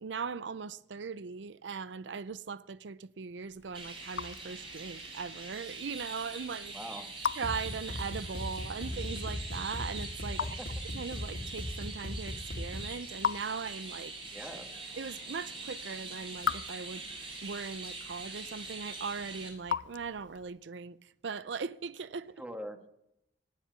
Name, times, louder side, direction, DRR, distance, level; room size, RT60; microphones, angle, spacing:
voice 1, 0.0-6.8 7.3-10.4 10.9-14.1 15.0-17.0 17.4-22.4, right 5 dB, 80° right, 0.5 m, -39 dB
Raindrop / Drip, 3.4-20.6, left 7 dB, 90° left, 0.6 m, -42 dB
Chirp tweet, 3.7-19.5, right 3 dB, 30° right, 5.2 m, -43 dB
voice 2, 6.7-7.1 10.3-10.7 14.3-14.7 22.4-22.9, equal, 5° right, 1.4 m, -43 dB
sound 1, 7.4-13.0, left 1 dB, 60° left, 2.1 m, -39 dB
18.5 x 7.4 x 8.2 m
head